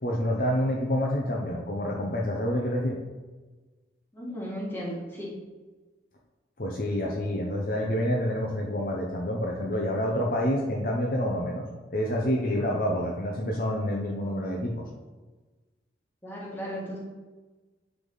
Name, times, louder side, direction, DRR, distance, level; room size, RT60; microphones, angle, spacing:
voice 1, 0.0-3.0 6.6-14.8, equal, 50° left, -1 dB, 0.7 m, -28 dB
voice 2, 4.1-5.3 16.2-17.0, equal, 10° left, -6 dB, 1.8 m, -35 dB
9.5 x 3.6 x 3.9 m, 1.2 s
head